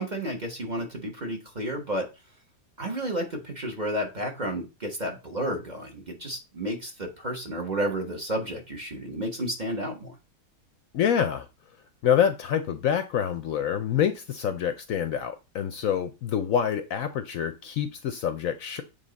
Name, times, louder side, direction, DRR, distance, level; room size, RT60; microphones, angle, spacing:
voice 1, 0.0-2.1 2.8-10.1, right 1 dB, 30° right, 1.2 m, -31 dB
voice 2, 10.9-11.5 12.0-18.8, left 8 dB, 65° left, 0.9 m, -26 dB
7.8 x 3.7 x 4.0 m
omnidirectional pair, 1.7 m